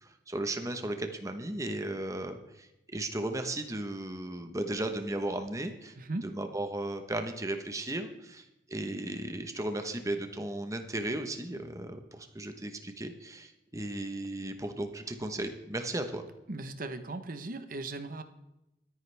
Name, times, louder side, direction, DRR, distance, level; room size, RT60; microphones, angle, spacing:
voice 1, 0.0-5.9 6.2-16.3, right 1 dB, 20° right, 7 dB, 1.1 m, -35 dB
voice 2, 6.0-6.3 16.5-18.2, right 2 dB, 50° right, 10 dB, 1.0 m, -37 dB
23.0 x 9.5 x 3.4 m, 0.91 s
head